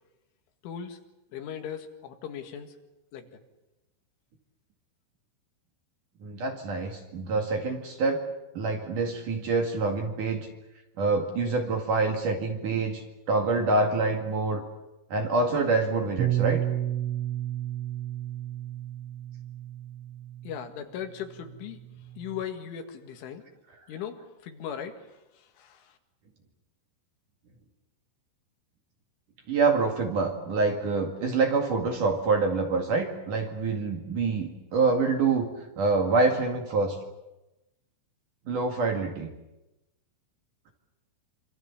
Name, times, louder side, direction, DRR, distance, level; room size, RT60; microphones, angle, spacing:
voice 1, 0.6-1.0 1.3-2.7 3.1-3.4 20.4-21.8 22.2-23.4 23.9-26.0, left 8 dB, 80° left, 6 dB, 4.4 m, -38 dB
voice 2, 6.2-8.2 8.5-10.5 11.0-14.6 15.1-16.6 29.5-35.5 35.8-37.0 38.5-39.3, right 3 dB, 50° right, 3 dB, 3.0 m, -26 dB
Bass guitar, 16.2-20.7 21.5-22.4, right 12 dB, 85° right, 5.2 m, -32 dB
26.5 x 26.0 x 7.2 m, 0.97 s
omnidirectional pair, 5.6 m